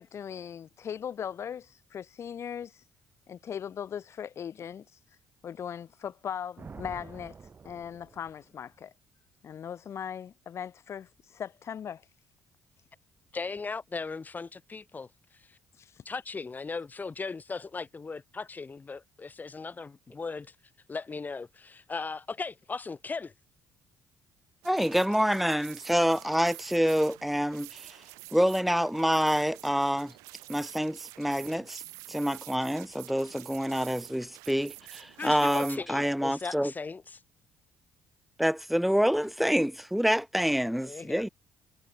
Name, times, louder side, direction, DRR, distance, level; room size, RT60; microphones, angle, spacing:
voice 1, 0.0-2.8 3.3-5.0 5.4-7.4 7.6-8.9 9.4-12.1 15.8-16.0, left 8 dB, 55° left, 3.9 m, -39 dB
Thunder, 6.6-8.8, right 5 dB, 40° right, 4.9 m, -48 dB
voice 2, 13.3-15.1 15.5-15.6 16.0-20.5 20.9-23.3 35.2-37.2 40.7-41.2, left 4 dB, 30° left, 2.7 m, -37 dB
voice 3, 24.6-28.0 28.3-30.1 30.5-31.8 32.1-36.7 38.4-41.3, equal, ahead, 0.8 m, -27 dB
sound 1, 24.6-35.8, right 23 dB, 80° right, 1.1 m, -48 dB
hypercardioid pair, 55°, 6 cm